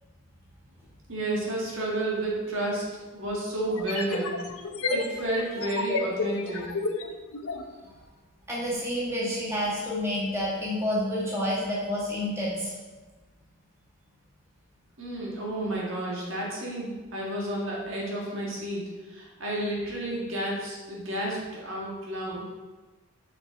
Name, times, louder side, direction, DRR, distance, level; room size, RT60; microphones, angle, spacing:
voice 1, 1.1-2.8 3.1-4.4 4.9-6.7 15.0-22.4, right 1 dB, 60° right, -3 dB, 1.6 m, -31 dB
sound 1, 2.3-2.4 3.7-7.7, left 3 dB, 85° left, 0.8 m, -31 dB
voice 2, 8.5-12.7, equal, 15° right, -7 dB, 1.6 m, -29 dB
7.2 x 5.8 x 3.5 m, 1.2 s
head